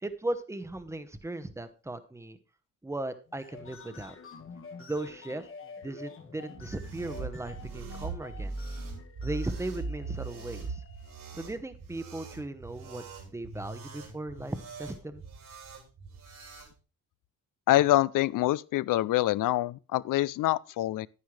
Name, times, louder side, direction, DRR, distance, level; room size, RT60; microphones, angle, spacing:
voice 1, 0.0-2.4 2.8-4.1 4.8-5.5 5.8-8.6 9.2-10.8 11.3-15.2, right 2 dB, 10° right, 0.9 m, -37 dB
sound 1, 3.3-11.5, left 5 dB, 40° left, 1.2 m, -49 dB
sound 2, 6.5-16.7, right 3 dB, 70° right, 3.6 m, -40 dB
voice 2, 17.7-21.1, left 15 dB, 70° left, 0.5 m, -25 dB
10.0 x 9.8 x 3.2 m
cardioid pair, 135°, 34 cm